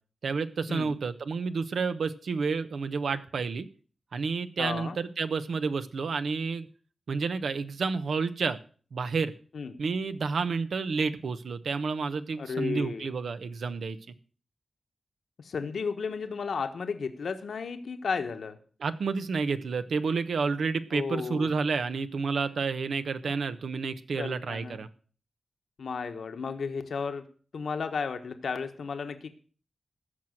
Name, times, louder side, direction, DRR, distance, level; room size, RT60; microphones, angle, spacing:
voice 1, 0.2-3.7 4.1-6.7 7.1-8.6 8.9-9.3 9.8-14.0 18.8-24.9, right 4 dB, 85° right, 11 dB, 0.9 m, -30 dB
voice 2, 4.6-5.0 9.5-9.8 12.4-13.1 15.4-18.6 20.9-21.5 23.2-23.3 24.2-24.8 25.8-27.2 27.5-29.3, left 5 dB, 80° left, 6 dB, 1.2 m, -33 dB
14.5 x 6.2 x 7.7 m, 0.42 s
wide cardioid pair, 95°, 0 cm